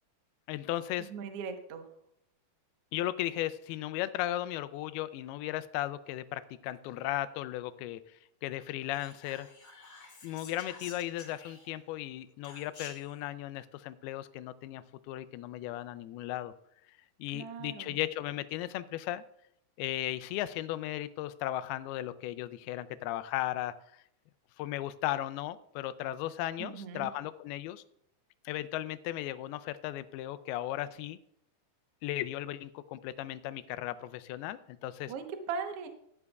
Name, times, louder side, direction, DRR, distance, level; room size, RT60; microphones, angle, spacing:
voice 1, 0.5-1.1 2.9-9.5 10.2-16.5 17.2-19.2 19.8-23.8 24.6-27.8 28.5-31.2 32.0-35.1, left 14 dB, 85° left, 12 dB, 2.5 m, -36 dB
voice 2, 1.1-1.8 17.3-18.0 26.6-27.1 35.1-35.9, right 5 dB, 85° right, 6 dB, 1.3 m, -39 dB
Whispering, 8.9-11.9 12.4-13.2, left 4 dB, 30° left, 2.1 m, -51 dB
16.0 x 11.0 x 2.4 m, 0.74 s
omnidirectional pair, 4.4 m